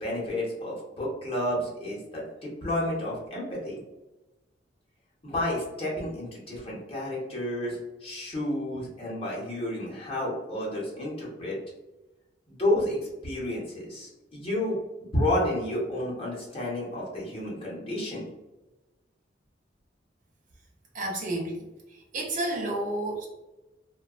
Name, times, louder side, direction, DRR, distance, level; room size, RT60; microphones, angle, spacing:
voice 1, 0.0-3.8 5.2-11.6 12.5-13.0 13.2-18.3, left 1 dB, 30° left, -4 dB, 0.9 m, -31 dB
voice 2, 20.9-21.6 22.1-23.3, right 1 dB, 45° right, -1 dB, 0.5 m, -30 dB
2.7 x 2.3 x 2.4 m, 1.1 s
head